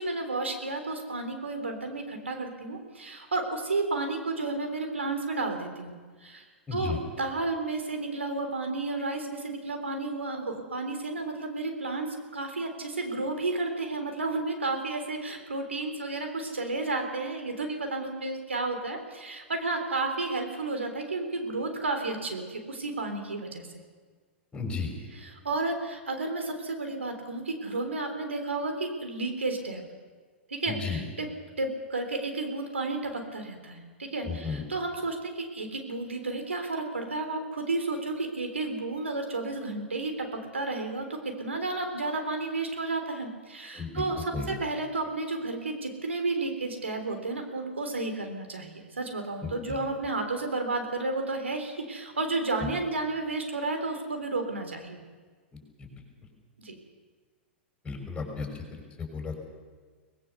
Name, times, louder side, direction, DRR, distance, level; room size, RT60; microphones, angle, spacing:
voice 1, 0.0-6.4 6.7-23.6 25.1-29.8 30.5-31.3 31.6-55.0 56.6-56.8, right 3 dB, 85° right, 5 dB, 3.6 m, -32 dB
voice 2, 6.7-7.0 24.5-24.9 30.7-31.0 34.2-34.6 43.7-44.0 44.3-44.5 49.4-49.8 52.6-52.7 55.8-55.9 57.8-59.3, left 5 dB, 15° left, 2 dB, 6.0 m, -34 dB
23.0 x 20.0 x 6.9 m, 1.5 s
hypercardioid pair, 105°, 6 cm